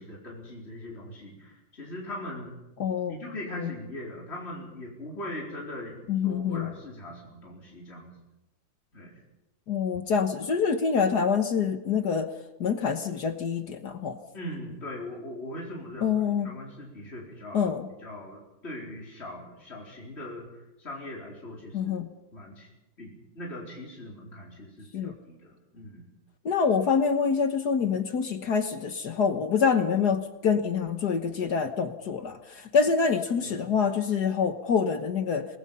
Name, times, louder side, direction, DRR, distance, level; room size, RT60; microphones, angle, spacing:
voice 1, 0.0-2.6 3.1-8.1 8.9-9.2 14.3-17.7 18.0-22.0 22.3-22.7 23.0-26.1 33.4-33.7, left 1 dB, 30° left, -3 dB, 4.7 m, -40 dB
voice 2, 2.8-3.1 3.6-3.7 6.1-6.7 9.7-12.3 12.6-14.2 16.0-16.5 17.5-17.8 21.7-22.1 24.9-25.1 26.5-35.5, left 6 dB, 60° left, 8 dB, 1.7 m, -26 dB
29.5 x 20.0 x 5.6 m, 0.97 s
omnidirectional pair, 2.1 m